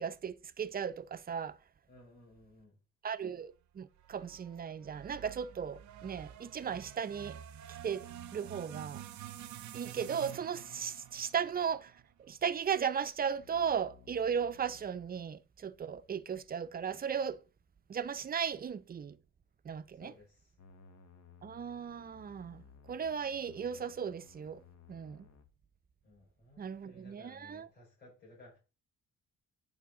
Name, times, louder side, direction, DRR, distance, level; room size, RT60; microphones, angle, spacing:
voice 1, 0.0-1.6 3.0-7.4 7.8-8.1 8.3-9.0 9.7-11.9 12.2-17.4 17.9-19.2 19.6-20.1 21.4-24.6 24.9-25.3 26.6-27.7, right 7 dB, 30° right, 0.5 m, -36 dB
voice 2, 1.9-2.7 20.0-20.5 26.0-28.6, left 1 dB, 35° left, 4.2 m, -58 dB
sound 1, 4.0-12.3, right 11 dB, 70° right, 0.7 m, -49 dB
sound 2, 13.4-15.3 20.6-25.4, left 6 dB, 65° left, 1.2 m, -59 dB
9.9 x 3.4 x 3.7 m
cardioid pair, 90°, 30 cm